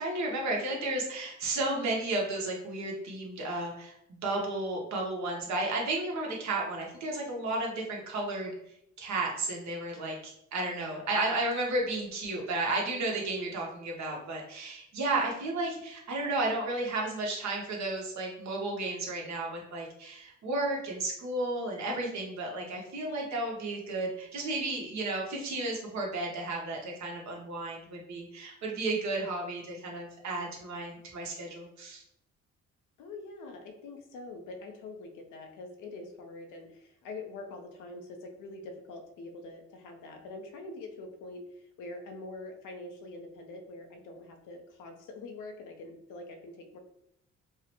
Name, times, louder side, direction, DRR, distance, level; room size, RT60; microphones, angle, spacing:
voice 1, 0.0-8.5 9.0-32.0, right 2 dB, 65° right, -1 dB, 1.1 m, -33 dB
voice 2, 33.0-46.8, left 2 dB, 90° left, 5 dB, 0.7 m, -44 dB
4.6 x 2.1 x 2.9 m, 0.77 s
cardioid pair, 90°, 30 cm